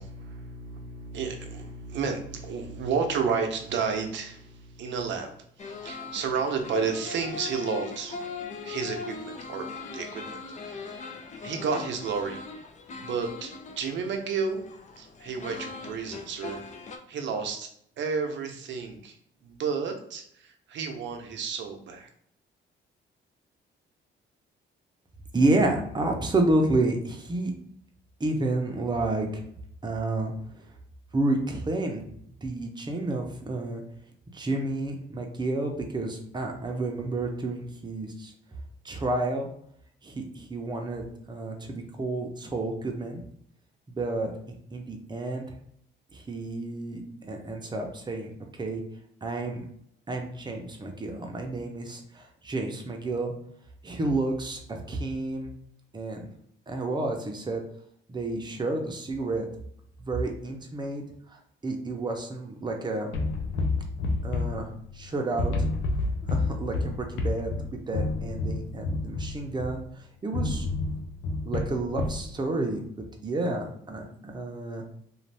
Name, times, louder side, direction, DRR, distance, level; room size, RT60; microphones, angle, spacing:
voice 1, 0.0-5.3 5.6-8.2 8.6-9.7 9.9-10.4 10.7-11.0 11.4-12.4 13.0-14.6 15.0-16.6 17.1-19.1 19.4-22.1, right 5 dB, 70° right, 4 dB, 0.6 m, -31 dB
sound 1, 5.6-17.0, left 4 dB, 35° left, 0.5 m, -40 dB
voice 2, 25.3-27.5 28.2-29.4 29.8-30.3 31.1-32.1 32.4-33.8 34.3-38.3 38.8-39.5 40.0-43.2 43.9-44.3 44.7-45.4 46.1-48.8 49.2-49.6 50.1-53.3 53.8-55.5 55.9-56.3 56.7-57.6 58.1-59.5 60.0-61.0 61.6-63.1 64.2-64.7 64.9-65.7 66.3-70.7 71.5-72.8 73.2-74.8, right 2 dB, 20° right, 2 dB, 0.6 m, -30 dB
sound 2, 63.1-65.1 65.4-69.9 70.3-72.3, left 3 dB, 85° left, 0.6 m, -29 dB
2.5 x 2.3 x 3.3 m, 0.69 s
cardioid pair, 90°, 20 cm